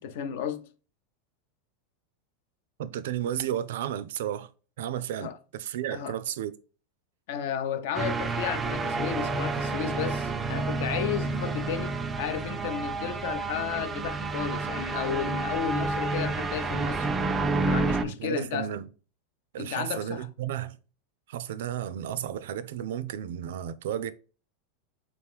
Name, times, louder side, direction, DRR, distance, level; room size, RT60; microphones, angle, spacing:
voice 1, 0.0-0.7 5.2-5.4 5.9-6.1 7.3-17.1 17.6-18.7 19.6-20.3, left 8 dB, 60° left, 0.6 m, -33 dB
voice 2, 2.8-4.5 4.8-6.5 18.0-18.9 19.5-20.8 21.3-24.1, right 10 dB, 80° right, 0.4 m, -33 dB
sound 1, 7.9-18.0, right 3 dB, 15° right, 0.3 m, -29 dB
3.9 x 3.0 x 3.5 m
supercardioid pair, 165°, 0 cm